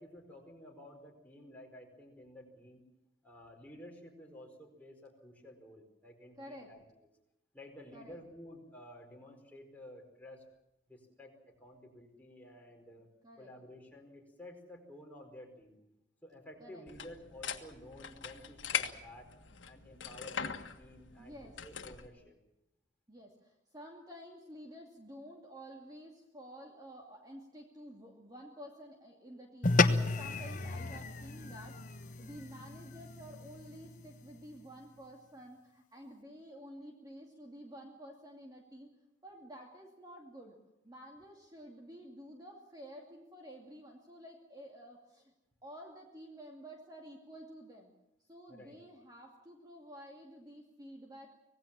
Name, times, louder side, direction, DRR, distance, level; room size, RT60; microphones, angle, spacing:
voice 1, 0.0-2.8 3.2-6.8 7.5-10.4 10.9-13.1 13.4-15.8 16.2-19.3 19.7-21.4 21.6-22.4 48.5-48.8, left 1 dB, 10° left, 0 dB, 4.8 m, -52 dB
voice 2, 6.4-6.7 7.9-8.2 13.2-13.5 16.6-16.8 21.2-21.6 23.1-38.9 39.2-40.6 40.8-45.3 45.6-47.9 48.3-51.3, equal, 20° right, 0 dB, 2.4 m, -51 dB
sound 1, 16.9-22.1, left 7 dB, 80° left, 1.7 m, -41 dB
sound 2, 29.6-34.3, left 3 dB, 45° left, 1.1 m, -33 dB
25.5 x 18.5 x 7.5 m, 0.88 s
head